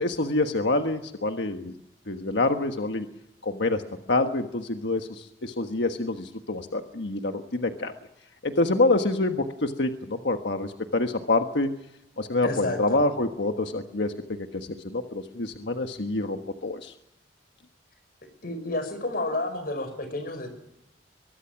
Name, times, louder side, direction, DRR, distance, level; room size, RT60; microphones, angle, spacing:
voice 1, 0.0-1.7 2.1-3.1 3.4-3.8 4.1-7.9 8.4-11.7 12.2-16.9, left 2 dB, 75° left, 5 dB, 1.4 m, -27 dB
voice 2, 12.4-13.0 18.4-20.5, left 2 dB, 55° left, 9 dB, 5.5 m, -30 dB
23.5 x 22.0 x 6.0 m, 0.88 s
head